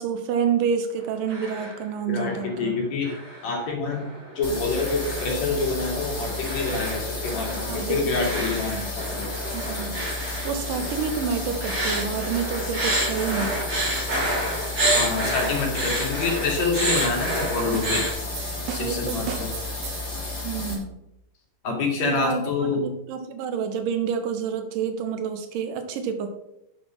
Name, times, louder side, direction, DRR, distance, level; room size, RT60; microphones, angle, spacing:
voice 1, 0.0-2.7 7.7-8.9 9.5-13.6 18.8-19.2 20.4-20.9 22.0-26.3, right 6 dB, 85° right, 8 dB, 2.6 m, -29 dB
sound 1, 1.0-1.8 2.1-2.6 3.0-18.1, right 1 dB, 35° right, 3.8 m, -29 dB
voice 2, 2.1-3.1 3.4-4.1 4.3-9.3 14.9-18.1 18.7-19.5 21.6-22.9, left 4 dB, 60° left, 1 dB, 3.3 m, -27 dB
sound 2, 4.4-20.7, left 2 dB, 20° left, 3.2 m, -32 dB
sound 3, 17.0-20.2, right 8 dB, 65° right, 1.9 m, -37 dB
9.1 x 6.2 x 6.0 m, 0.82 s
omnidirectional pair, 3.8 m